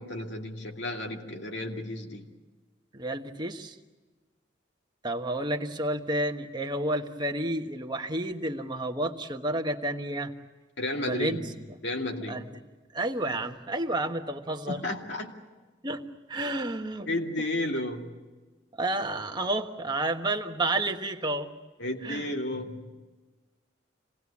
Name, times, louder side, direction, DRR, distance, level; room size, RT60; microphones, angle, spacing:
voice 1, 0.0-2.3 10.8-11.4 11.8-12.5 14.7-15.3 16.4-16.5 17.1-18.1 21.8-22.9, left 1 dB, 60° left, 2 dB, 2.4 m, -33 dB
voice 2, 2.9-3.7 5.0-10.3 11.1-11.4 12.3-12.4 12.9-14.8 15.8-16.0 16.3-17.1 18.8-21.5 22.0-22.3, right 1 dB, 25° right, 4 dB, 1.3 m, -30 dB
26.5 x 19.0 x 8.5 m, 1.3 s
head